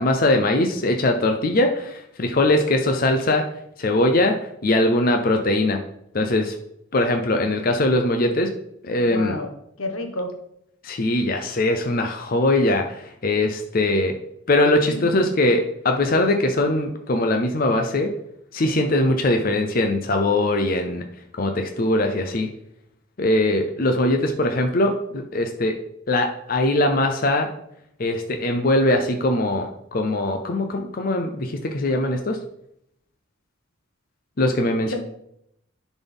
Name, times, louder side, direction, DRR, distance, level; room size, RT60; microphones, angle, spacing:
voice 1, 0.0-3.5 3.8-5.8 6.1-6.5 6.9-8.5 8.8-9.3 10.8-14.1 14.5-18.1 18.5-21.0 21.3-22.5 23.2-25.8 26.1-27.5 28.0-32.4 34.4-34.9, left 1 dB, 45° left, 4 dB, 0.6 m, -21 dB
voice 2, 9.0-9.5 9.8-10.3 14.7-15.3 34.8-35.0, left 1 dB, 90° left, 4 dB, 1.3 m, -31 dB
10.5 x 4.1 x 3.5 m, 0.75 s
head